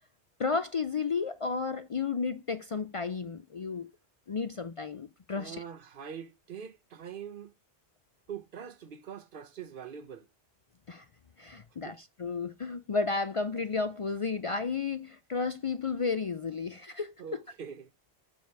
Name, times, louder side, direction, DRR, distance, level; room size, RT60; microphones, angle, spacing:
voice 1, 0.4-3.9 4.3-5.6 10.9-11.1 11.4-17.1, left 4 dB, 50° left, 0.4 m, -32 dB
voice 2, 5.3-7.5 8.3-10.3 11.8-12.0 17.2-17.9, right 7 dB, 60° right, 0.8 m, -43 dB
6.8 x 5.3 x 4.5 m
omnidirectional pair, 1.1 m